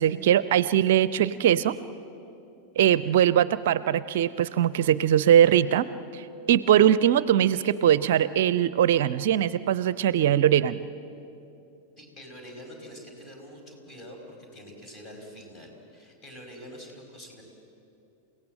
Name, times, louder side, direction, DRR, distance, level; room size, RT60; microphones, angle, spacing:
voice 1, 0.0-1.8 2.8-10.8, right 10 dB, 55° right, 17 dB, 0.5 m, -21 dB
voice 2, 12.0-17.4, equal, 25° left, 2 dB, 5.4 m, -45 dB
29.0 x 17.0 x 7.6 m, 2.8 s
figure-of-eight pair, 90°, 0 cm